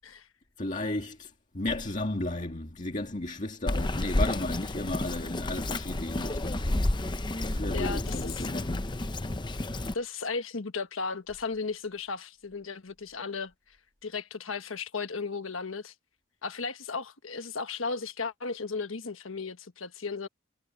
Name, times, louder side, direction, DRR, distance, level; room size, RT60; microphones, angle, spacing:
voice 1, 0.6-6.8 7.4-8.9, left 2 dB, 40° left, 1.9 m, -34 dB
Bird vocalization bird call bird song, 3.7-9.9, left 1 dB, 25° left, 0.7 m, -31 dB
voice 2, 7.7-8.5 9.9-13.8 14.0-15.9 16.4-20.3, left 4 dB, 85° left, 1.4 m, -35 dB
head